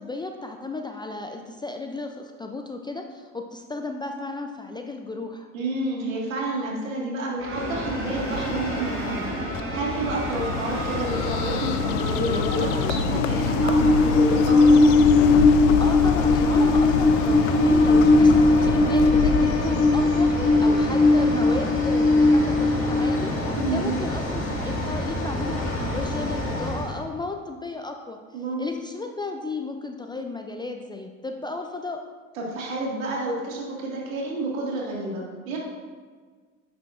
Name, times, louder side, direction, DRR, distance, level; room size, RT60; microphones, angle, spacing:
voice 1, 0.0-5.5 15.8-28.2 28.6-32.0, left 3 dB, 10° left, 3 dB, 0.3 m, -34 dB
voice 2, 5.5-9.4 9.7-14.8 23.6-24.0 28.3-28.6 32.3-35.6, right 2 dB, 75° right, -3 dB, 1.9 m, -29 dB
sound 1, 7.4-12.8, right 3 dB, 30° right, 1.2 m, -38 dB
Train, 7.5-26.9, left 2 dB, 30° left, 2.0 m, -21 dB
Bird, 9.5-21.0, left 7 dB, 60° left, 0.6 m, -27 dB
9.3 x 5.9 x 2.5 m, 1.5 s
hypercardioid pair, 70°, 40 cm